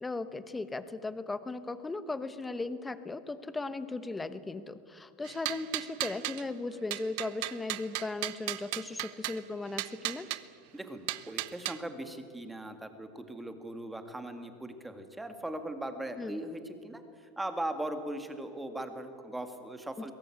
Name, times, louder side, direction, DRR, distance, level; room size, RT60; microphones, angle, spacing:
voice 1, 0.0-10.3 16.2-16.4, left 3 dB, 10° left, 13 dB, 1.0 m, -37 dB
sound 1, 5.2-6.4 6.9-9.4 9.8-10.4 11.1-11.8, right 19 dB, 65° right, 0.7 m, -35 dB
voice 2, 10.7-20.1, right 1 dB, 5° right, 7 dB, 2.0 m, -39 dB
22.0 x 17.5 x 8.5 m, 2.3 s
supercardioid pair, 130°, 0 cm